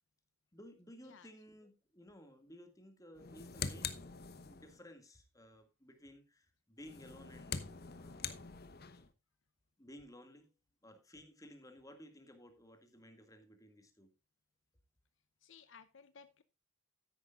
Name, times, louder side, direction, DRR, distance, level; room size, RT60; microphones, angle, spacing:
voice 1, 0.5-4.1 4.4-8.4 9.8-10.5 10.8-14.1, equal, 15° left, 2.1 m, -57 dB
sound 1, 3.1-4.8 6.8-9.1, left 6 dB, 50° left, 1.1 m, -44 dB
voice 2, 15.4-16.4, left 6 dB, 70° left, 0.7 m, -58 dB
13.5 x 10.5 x 2.5 m
head